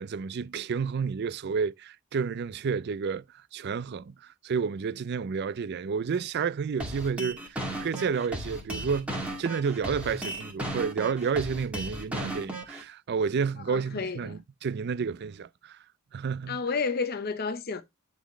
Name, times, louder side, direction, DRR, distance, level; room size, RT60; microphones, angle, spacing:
voice 1, 0.0-3.2 3.5-15.8 16.1-16.6, right 6 dB, 50° right, 0.4 m, -30 dB
sound 1, 6.8-12.8, right 1 dB, 5° right, 2.2 m, -35 dB
voice 2, 13.7-14.4 16.5-17.8, left 4 dB, 45° left, 0.7 m, -31 dB
11.0 x 4.2 x 3.1 m
head